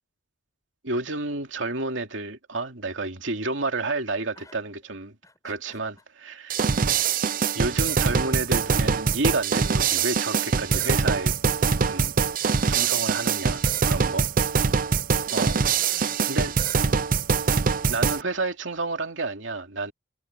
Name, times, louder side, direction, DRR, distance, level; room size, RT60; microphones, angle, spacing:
voice 1, 0.8-5.2 5.4-5.9 6.2-6.6 7.5-11.3 11.8-12.1 12.7-14.2 15.3-15.6 16.3-16.5 17.9-19.9, right 3 dB, 75° right, 2.7 m, -30 dB
voice 2, 5.2-6.0 12.4-14.6 15.3-16.8, left 1 dB, 15° left, 7.4 m, -50 dB
sound 1, 6.5-18.2, right 5 dB, 45° right, 0.6 m, -23 dB
head